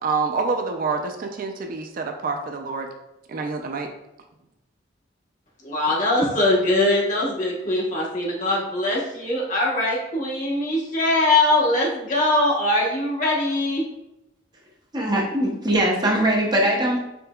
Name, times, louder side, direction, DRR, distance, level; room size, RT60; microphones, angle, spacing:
voice 1, 0.0-2.9 3.3-3.9, right 4 dB, 50° right, 4 dB, 0.4 m, -27 dB
voice 2, 5.6-13.9, left 1 dB, 45° left, -4 dB, 1.1 m, -22 dB
voice 3, 14.9-17.0, right 1 dB, 25° right, -2 dB, 0.8 m, -21 dB
5.2 x 3.3 x 2.3 m, 0.91 s
head